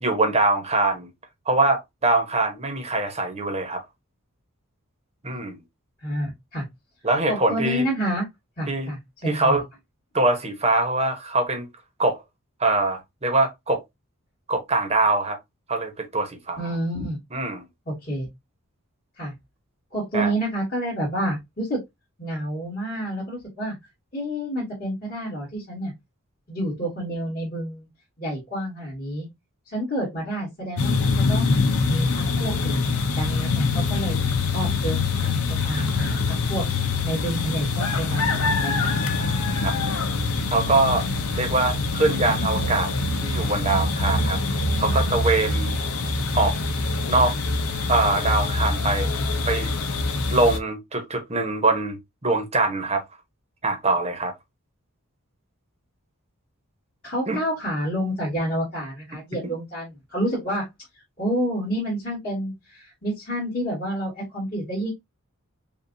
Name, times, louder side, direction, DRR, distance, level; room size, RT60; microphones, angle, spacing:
voice 1, 0.0-1.1 1.5-3.8 5.2-5.6 7.0-7.9 8.7-8.9 9.3-9.6 10.1-11.7 12.0-12.2 12.6-13.8 14.5-15.4 15.7-16.6 17.3-17.6 20.1-20.3 39.6-39.7 40.5-41.1 41.4-42.9 43.2-44.4 44.8-45.7 46.3-46.6 47.1-47.4 47.9-49.1 49.4-49.7 50.3-52.0 52.2-53.0 53.6-54.3 57.3-57.4 59.4-59.5, right 2 dB, 30° right, 1.1 m, -23 dB
voice 2, 6.0-6.6 7.3-8.3 8.6-9.6 16.6-17.2 17.9-18.3 19.2-19.3 19.9-21.8 22.2-23.8 24.1-25.9 26.5-27.9 28.2-29.3 29.7-31.5 31.9-32.8 33.1-34.2 34.5-36.7 37.0-39.1 57.0-60.7 61.2-64.9, equal, 40° left, 2.5 m, -29 dB
sound 1, 30.8-50.6, left 3 dB, 75° left, 0.7 m, -24 dB
5.5 x 2.5 x 2.7 m
head